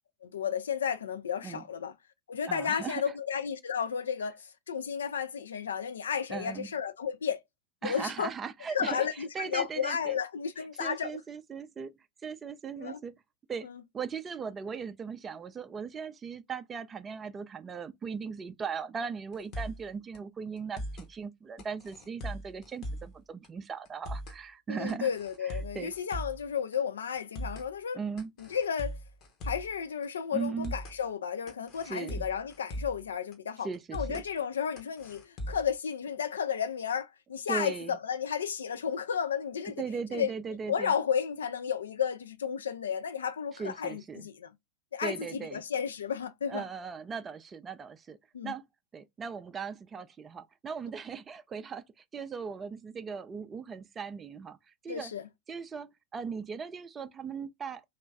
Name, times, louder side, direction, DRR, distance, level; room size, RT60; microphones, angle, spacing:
voice 1, 0.2-1.9 2.3-7.4 7.8-8.3 8.7-11.2 12.8-13.0 13.6-13.8 24.7-28.0 28.4-29.0 29.4-39.8 40.1-40.3 40.7-44.5 44.9-46.6 48.3-48.5 54.9-55.2, left 7 dB, 65° left, 0.3 m, -33 dB
voice 2, 2.5-3.1 6.3-6.7 7.8-10.2 10.8-11.9 12.2-13.1 13.5-13.7 13.9-25.1 25.4-25.9 27.9-28.3 30.3-30.7 31.8-32.3 33.6-34.2 37.5-38.0 39.8-40.9 43.5-44.3 45.0-45.6 46.5-48.2 48.4-48.6 48.9-51.8 52.1-55.1 55.5-57.8, right 6 dB, 20° right, 0.3 m, -38 dB
sound 1, 19.3-19.9 20.1-20.2 20.6-21.1 21.6-23.2 23.4-23.5 23.9-24.4 24.9-26.4 26.7-26.8 27.1-27.7 28.2-29.7 30.0-30.1 30.4-31.0 31.5-33.0 33.3-33.4 33.7-34.3 34.8-35.7, equal, 35° left, 0.9 m, -39 dB
3.0 x 2.4 x 3.4 m
figure-of-eight pair, 90°, 0 cm